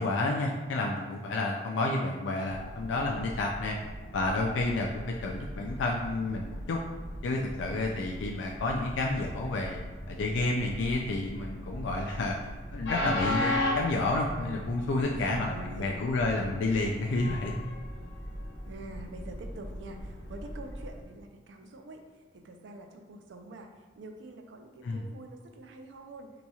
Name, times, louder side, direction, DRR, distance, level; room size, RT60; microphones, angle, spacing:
voice 1, 0.0-3.8 4.1-6.8 7.2-9.8 10.1-17.6 24.8-25.0, left 2 dB, 90° left, 0 dB, 0.3 m, -30 dB
Train, 2.5-21.0, left 1 dB, 70° left, 0.7 m, -38 dB
voice 2, 15.0-16.0 18.7-26.3, right 2 dB, 80° right, 4 dB, 0.4 m, -45 dB
2.9 x 2.3 x 4.0 m, 1.3 s
head